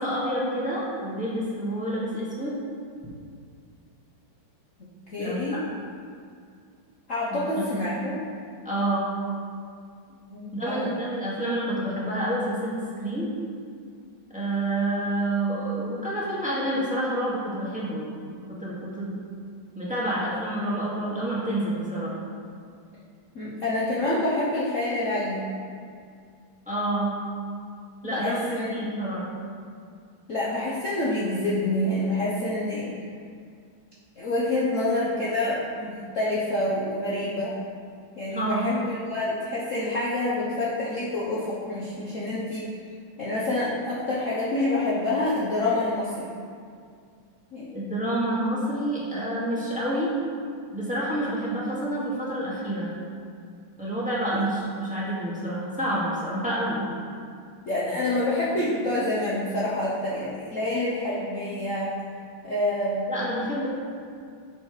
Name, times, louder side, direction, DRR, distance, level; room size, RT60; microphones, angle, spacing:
voice 1, 0.0-2.6 5.2-5.6 7.3-7.9 8.6-9.1 10.5-13.3 14.3-19.2 19.8-22.1 26.7-27.1 28.0-29.2 38.3-38.7 47.7-50.1 50.7-52.9 53.8-56.8 57.9-58.0 63.1-63.7, right 1 dB, 5° right, -8 dB, 1.9 m, -28 dB
voice 2, 4.8-5.6 7.1-8.2 10.3-11.0 23.3-25.5 28.0-28.9 30.3-32.9 34.2-37.5 38.1-42.7 43.2-46.3 47.5-47.8 54.3-54.4 57.6-62.0 62.4-63.1, left 1 dB, 50° left, -7 dB, 1.2 m, -27 dB
10.0 x 7.5 x 3.2 m, 2.2 s
omnidirectional pair, 2.1 m